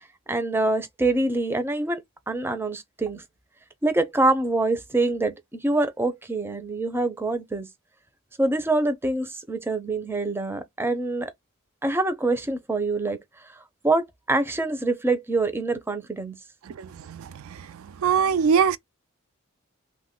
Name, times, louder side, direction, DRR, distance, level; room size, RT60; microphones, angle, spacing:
voice 1, 0.3-2.0 2.3-3.2 3.8-7.7 8.4-11.3 11.8-13.2 13.5-16.4, right 2 dB, 10° right, 0.5 m, -25 dB
voice 2, 16.7-17.6 18.0-18.8, right 6 dB, 85° right, 0.3 m, -23 dB
2.9 x 2.1 x 3.7 m
head